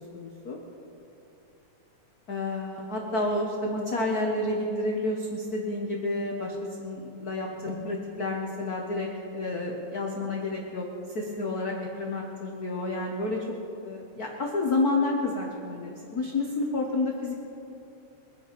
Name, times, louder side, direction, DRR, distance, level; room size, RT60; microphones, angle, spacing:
voice 1, 0.1-0.6 2.3-9.1 9.3-10.8 11.1-13.5 13.8-17.3, left 2 dB, 50° left, 0 dB, 1.1 m, -30 dB
23.0 x 9.2 x 5.2 m, 2.7 s
omnidirectional pair, 3.4 m